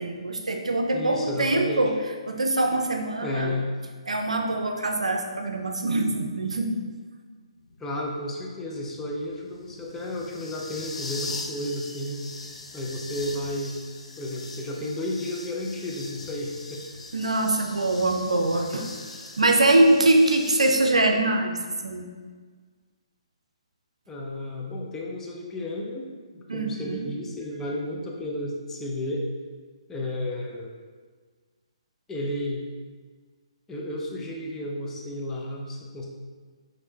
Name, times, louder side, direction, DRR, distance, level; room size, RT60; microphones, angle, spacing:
voice 1, 0.0-1.9 2.3-3.5 4.1-6.8 17.1-18.9 19.4-21.5 21.8-22.1 26.5-27.1, right 2 dB, 90° right, 3 dB, 0.5 m, -23 dB
voice 2, 0.9-1.9 3.2-3.7 7.8-12.2 12.7-13.8 14.2-16.8 24.1-29.3 29.9-30.7 32.1-32.6 33.7-36.1, left 1 dB, 10° left, -2 dB, 0.6 m, -32 dB
sound 1, 7.6-20.8, left 3 dB, 80° left, 0.6 m, -41 dB
6.0 x 3.1 x 2.8 m, 1.5 s
hypercardioid pair, 145°, 3 cm